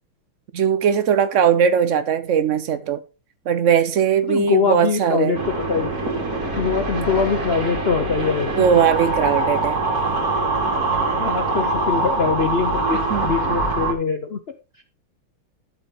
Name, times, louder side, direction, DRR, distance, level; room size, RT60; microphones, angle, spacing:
voice 1, 0.5-3.0 3.5-5.4 8.6-9.8 12.9-13.4, right 8 dB, 90° right, 0.6 m, -19 dB
voice 2, 4.2-6.0 6.6-8.7 10.9-14.4, left 5 dB, 75° left, 0.5 m, -23 dB
sound 1, 5.3-13.9, right 2 dB, 45° right, 3.2 m, -23 dB
12.0 x 7.6 x 3.0 m
omnidirectional pair, 2.3 m